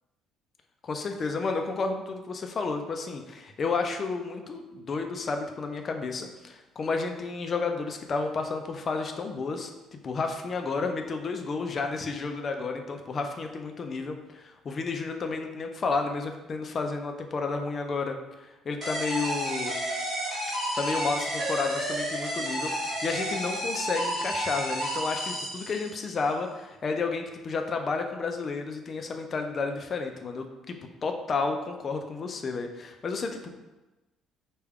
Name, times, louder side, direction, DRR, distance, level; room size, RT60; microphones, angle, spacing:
voice 1, 0.8-19.7 20.8-33.6, left 4 dB, 25° left, 4 dB, 0.3 m, -31 dB
sound 1, 18.8-26.2, equal, 20° right, 1.4 m, -31 dB
4.6 x 2.2 x 3.4 m, 1.1 s
cardioid pair, 180°, 0 cm